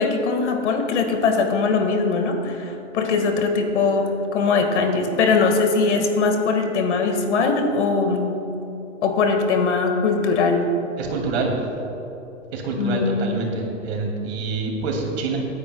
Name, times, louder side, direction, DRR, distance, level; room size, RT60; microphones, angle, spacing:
voice 1, 0.0-8.4 9.0-10.7 12.8-13.4, left 4 dB, 60° left, 4 dB, 1.9 m, -21 dB
voice 2, 11.0-11.5 12.5-15.4, right 3 dB, 55° right, 1 dB, 2.7 m, -26 dB
25.0 x 9.8 x 2.3 m, 3.0 s
hypercardioid pair, 140°, 38 cm